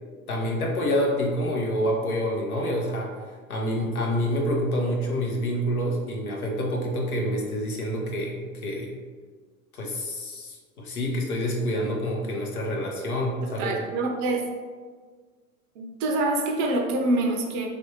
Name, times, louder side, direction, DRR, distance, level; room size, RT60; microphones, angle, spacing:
voice 1, 0.3-3.1 3.5-9.0 9.7-13.8, equal, 85° left, 0 dB, 0.8 m, -27 dB
voice 2, 13.6-14.5 15.8-17.7, right 2 dB, 40° right, 3 dB, 0.4 m, -25 dB
3.3 x 2.5 x 2.8 m, 1.5 s
figure-of-eight pair, 85°, 43 cm